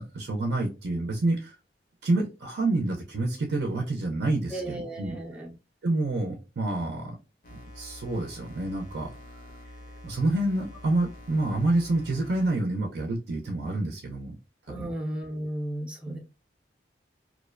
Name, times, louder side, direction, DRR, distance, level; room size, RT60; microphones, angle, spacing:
voice 1, 0.0-1.5 2.0-5.2 5.8-7.2 7.5-9.1 10.0-14.3 14.7-14.9 16.1-16.2, right 2 dB, 70° right, 2 dB, 0.5 m, -28 dB
voice 2, 4.5-5.5 14.7-16.2, right 1 dB, 5° right, -1 dB, 0.5 m, -34 dB
sound 1, 7.4-12.5, left 1 dB, 50° left, 0.6 m, -46 dB
2.5 x 2.1 x 2.4 m, 0.29 s
head